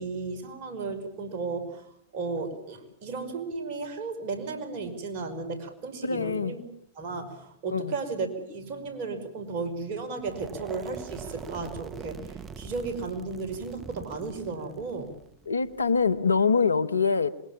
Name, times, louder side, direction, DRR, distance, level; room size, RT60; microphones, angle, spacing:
voice 1, 0.0-1.8 2.1-6.6 7.0-15.1, right 4 dB, 50° right, 5.6 m, -34 dB
voice 2, 6.0-6.5 7.7-7.9 15.5-17.3, left 5 dB, 90° left, 1.1 m, -24 dB
sound 1, 10.2-16.2, right 6 dB, 25° right, 1.2 m, -43 dB
26.5 x 22.0 x 7.3 m
hypercardioid pair, 100°, 0 cm